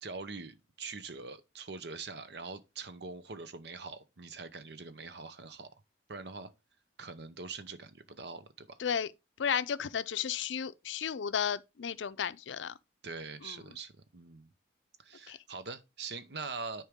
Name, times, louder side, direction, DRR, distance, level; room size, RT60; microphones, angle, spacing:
voice 1, 0.0-5.7 6.1-6.5 7.0-8.8 13.0-14.5 15.0-16.9, right 4 dB, 65° right, 0.8 m, -43 dB
voice 2, 9.4-12.7 13.4-13.5 15.3-15.4, left 7 dB, 85° left, 0.5 m, -33 dB
10.0 x 4.6 x 3.6 m
head